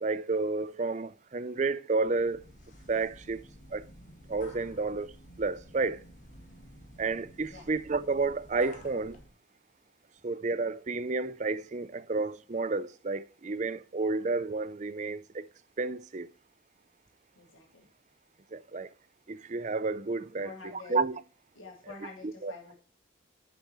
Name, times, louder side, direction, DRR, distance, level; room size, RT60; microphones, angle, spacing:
voice 1, 0.0-2.4 2.9-3.4 3.7-3.8 4.3-5.1 5.4-6.0 7.0-9.2 10.2-15.4 15.8-16.3 18.5-18.9 19.3-21.2 22.4-22.5, right 3 dB, 35° right, 0.5 m, -31 dB
sound 1, 2.0-9.3, equal, 40° left, 1.9 m, -52 dB
voice 2, 17.4-17.9 20.4-21.0 21.5-22.7, left 3 dB, 85° left, 2.7 m, -47 dB
10.0 x 7.0 x 3.1 m
head